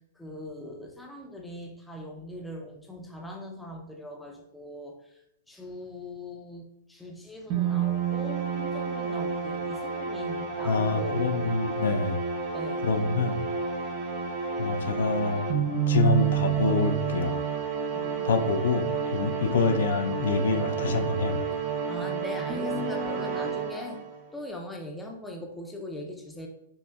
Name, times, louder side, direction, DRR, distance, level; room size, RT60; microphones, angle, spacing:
voice 1, 0.2-5.0 5.5-11.2 12.5-12.8 17.9-18.5 19.1-19.3 21.9-24.0 24.3-26.5, left 1 dB, 5° left, 1 dB, 0.4 m, -40 dB
sound 1, 7.5-24.2, right 6 dB, 35° right, 0.7 m, -30 dB
voice 2, 10.6-12.2 12.8-13.4 14.6-15.4 15.9-17.4 18.2-21.4, left 4 dB, 80° left, 7 dB, 0.4 m, -26 dB
5.3 x 2.1 x 2.3 m, 0.80 s
hypercardioid pair, 165°, 0 cm